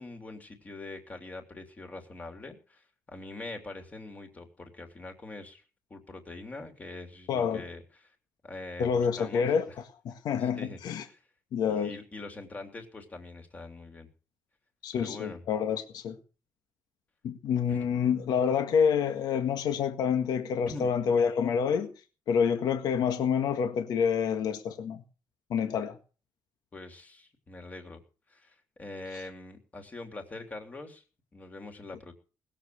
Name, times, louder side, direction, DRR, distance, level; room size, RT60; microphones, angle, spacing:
voice 1, 0.0-5.6 5.9-8.1 8.4-9.7 10.4-11.2 11.7-14.1 14.9-15.4 17.7-18.0 20.7-20.9 26.7-28.0 28.3-31.0 31.3-32.1, left 2 dB, 20° left, 3.2 m, -44 dB
voice 2, 7.3-7.6 8.8-9.6 10.1-11.0 11.5-12.0 14.8-16.2 17.2-21.9 22.3-25.0 25.5-26.0, left 7 dB, 70° left, 1.8 m, -27 dB
20.0 x 7.8 x 6.8 m
cardioid pair, 160°, 7 cm